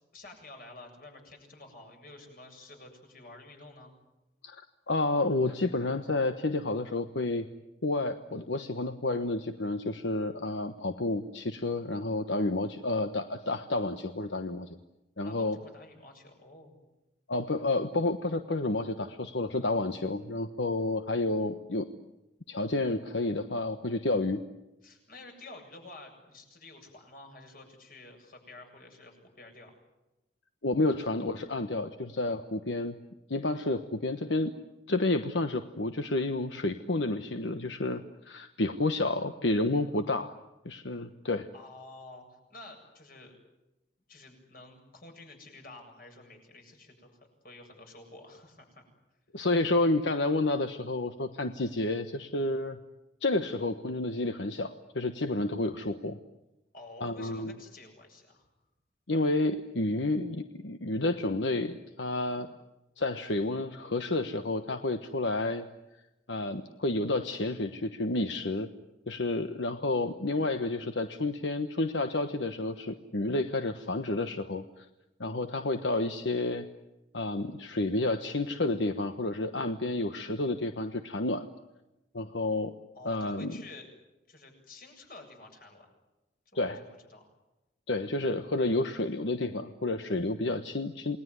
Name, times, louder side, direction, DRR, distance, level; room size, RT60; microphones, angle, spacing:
voice 1, 0.1-3.9 15.2-16.8 24.8-29.8 41.5-43.3 44.1-48.8 56.7-58.5 82.9-83.9 84.3-85.9 86.5-87.2, left 2 dB, 50° left, 3 dB, 7.7 m, -50 dB
voice 2, 4.4-7.5 7.8-14.7 15.2-15.6 17.3-21.9 22.5-24.4 30.6-33.0 33.3-34.5 34.9-40.4 40.6-41.5 49.3-52.8 53.2-56.2 57.0-57.5 59.1-62.5 63.0-65.7 66.3-68.7 69.1-74.8 75.2-76.7 77.1-81.5 82.1-82.7 83.0-83.6 86.5-86.8 87.9-91.2, left 2 dB, 85° left, 8 dB, 1.2 m, -30 dB
28.5 x 20.5 x 9.6 m, 0.99 s
head